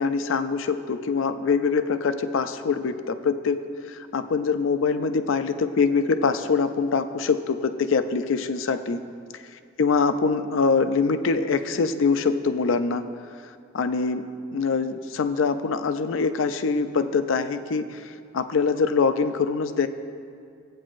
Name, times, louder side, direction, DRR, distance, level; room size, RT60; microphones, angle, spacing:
voice 1, 0.0-9.0 9.8-13.0 13.7-14.2 14.5-19.9, left 4 dB, 70° left, 10 dB, 0.4 m, -24 dB
15.5 x 8.4 x 2.5 m, 2.3 s
head